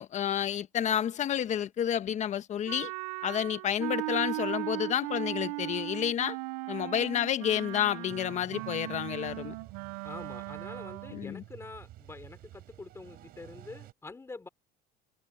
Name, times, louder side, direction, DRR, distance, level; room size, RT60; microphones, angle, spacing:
voice 1, 0.0-2.9 3.2-6.4 6.7-9.5 11.1-11.4, left 10 dB, 40° left, 1.3 m, -30 dB
Wind instrument woodwind instrument, 2.7-11.3, right 22 dB, 85° right, 0.6 m, -38 dB
sound 1, 8.1-13.9, right 15 dB, 55° right, 4.2 m, -51 dB
voice 2, 10.0-14.5, left 3 dB, 15° left, 3.6 m, -46 dB
supercardioid pair, 120°, 18 cm